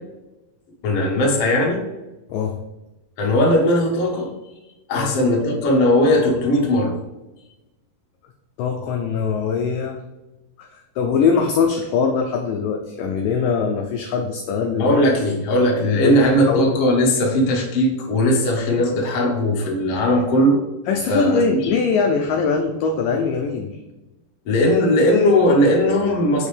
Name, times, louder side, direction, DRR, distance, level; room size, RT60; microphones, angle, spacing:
voice 1, 0.8-1.8 3.2-4.3 4.9-6.9 14.8-20.6 21.1-21.7 24.4-26.5, left 1 dB, 65° left, -1 dB, 1.5 m, -18 dB
voice 2, 8.6-10.0 11.0-15.0 16.0-16.7 20.9-23.8, left 5 dB, 85° left, 3 dB, 1.9 m, -22 dB
6.3 x 5.3 x 3.3 m, 1.0 s
omnidirectional pair, 4.5 m